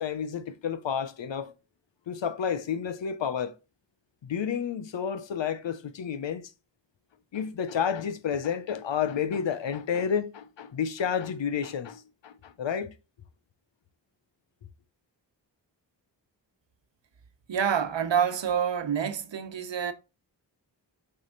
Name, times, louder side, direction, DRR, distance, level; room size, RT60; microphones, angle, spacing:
voice 1, 0.0-1.5 2.1-3.6 4.2-6.5 7.3-12.9, left 7 dB, 85° left, 0.8 m, -30 dB
voice 2, 17.5-19.9, right 8 dB, 80° right, 1.1 m, -27 dB
6.2 x 4.8 x 3.9 m
cardioid pair, 45°, 44 cm